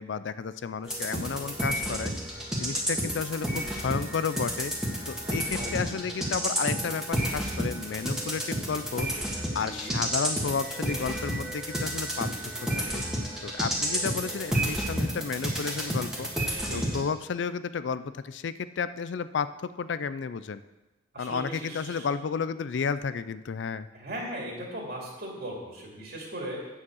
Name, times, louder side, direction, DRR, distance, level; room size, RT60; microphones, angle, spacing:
voice 1, 0.0-2.1 2.6-4.7 5.1-9.1 9.5-12.3 12.7-13.0 13.4-16.3 16.7-20.6 21.2-23.9, left 6 dB, 80° left, 14 dB, 0.4 m, -32 dB
sound 1, 0.8-17.0, equal, 5° right, 1.7 m, -31 dB
voice 2, 5.3-5.8 9.5-10.0 16.7-17.0 21.1-22.1 23.9-26.6, right 1 dB, 60° right, -1 dB, 2.5 m, -38 dB
8.6 x 7.2 x 6.3 m, 1.1 s
head